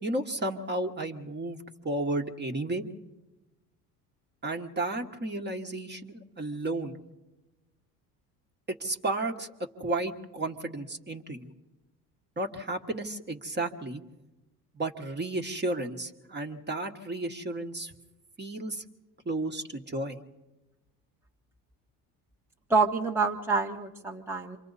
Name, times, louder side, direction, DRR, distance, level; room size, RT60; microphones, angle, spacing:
voice 1, 0.0-2.8 4.4-7.0 8.7-9.5 9.8-11.5 12.4-14.0 14.7-17.9 18.4-18.8 19.2-20.2, right 2 dB, 20° right, 4 dB, 1.5 m, -33 dB
voice 2, 22.7-24.6, right 4 dB, 5° right, -1 dB, 1.2 m, -27 dB
27.5 x 24.5 x 4.1 m, 1.1 s
hypercardioid pair, 70°, 46 cm